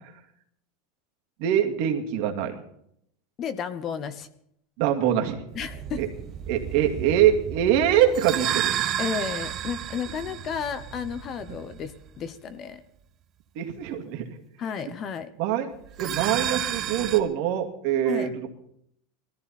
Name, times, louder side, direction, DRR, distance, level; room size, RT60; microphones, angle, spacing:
voice 1, 1.4-2.6 4.8-5.4 6.0-6.1 6.5-8.7 13.6-14.2 15.4-15.7 16.0-18.5, right 10 dB, 55° right, 4 dB, 2.3 m, -23 dB
voice 2, 3.4-4.3 5.5-6.0 9.0-12.8 14.6-15.3 18.0-18.3, left 7 dB, 30° left, 13 dB, 1.0 m, -32 dB
sound 1, 5.5-12.2 15.8-17.2, right 10 dB, 30° right, 1.1 m, -32 dB
20.5 x 14.5 x 4.3 m, 0.71 s
supercardioid pair, 160°, 0 cm